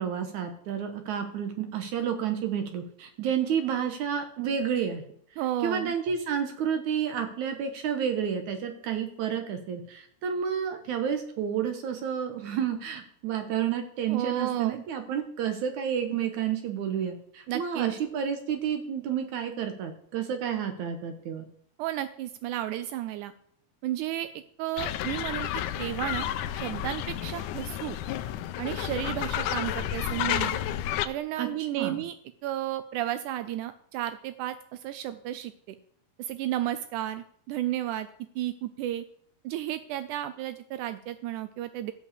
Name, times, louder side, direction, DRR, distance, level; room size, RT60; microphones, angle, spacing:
voice 1, 0.0-5.0 5.6-21.5 31.4-32.0, right 8 dB, 65° right, 6 dB, 2.2 m, -30 dB
voice 2, 5.4-5.9 14.1-14.8 17.5-17.9 21.8-23.3 23.8-26.3 26.5-28.0 28.6-30.6 31.0-32.1 32.4-35.8 36.2-38.1 38.4-39.0 39.4-41.9, right 13 dB, 85° right, 12 dB, 1.7 m, -33 dB
sound 1, 24.8-31.1, left 11 dB, 80° left, 1.9 m, -31 dB
13.0 x 5.5 x 8.3 m, 0.65 s
omnidirectional pair, 4.1 m